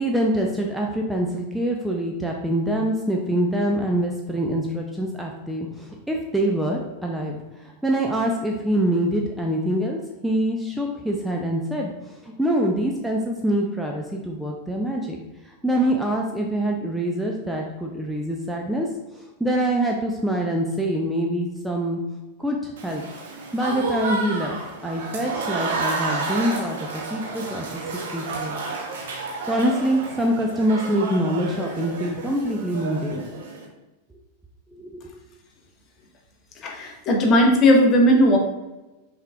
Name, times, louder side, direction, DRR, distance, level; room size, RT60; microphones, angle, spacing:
voice 1, 0.0-15.2 15.5-18.9 19.1-22.0 22.4-23.0 23.5-24.5 24.8-28.6 29.5-33.2 34.7-35.0, right 1 dB, 5° right, -1 dB, 0.5 m, -25 dB
Applause / Crowd, 22.8-33.6, right 3 dB, 60° right, 0.9 m, -31 dB
voice 2, 36.6-38.4, equal, 30° left, 2 dB, 0.8 m, -17 dB
5.4 x 3.6 x 2.3 m, 1.1 s
figure-of-eight pair, 90°, 0 cm